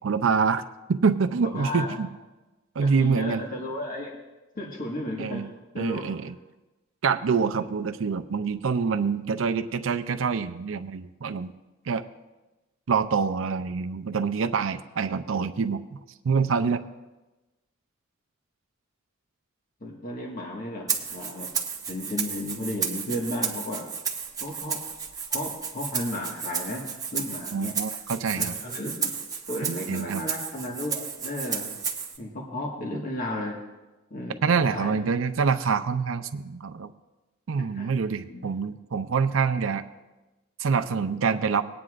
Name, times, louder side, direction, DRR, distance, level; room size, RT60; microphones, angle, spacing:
voice 1, 0.0-2.1 2.8-3.4 5.2-5.5 5.8-6.3 7.0-11.5 11.9-12.0 12.9-16.0 16.2-16.8 27.5-28.6 29.9-30.2 34.4-36.9 37.5-39.8 40.6-41.6, right 5 dB, 75° right, 8 dB, 0.5 m, -26 dB
voice 2, 1.5-2.0 2.8-4.1 4.5-5.4 5.7-6.0 7.6-7.7 19.8-21.5 21.9-23.8 24.4-24.8 25.3-26.8 27.1-27.7 28.4-29.1 29.5-31.7 32.2-33.6 34.1-35.0 37.6-37.9 38.3-38.5, left 1 dB, 45° left, -2 dB, 1.6 m, -34 dB
Rattle (instrument), 20.9-32.2, right 6 dB, 20° right, 0.9 m, -33 dB
20.0 x 9.5 x 2.5 m, 1.1 s
head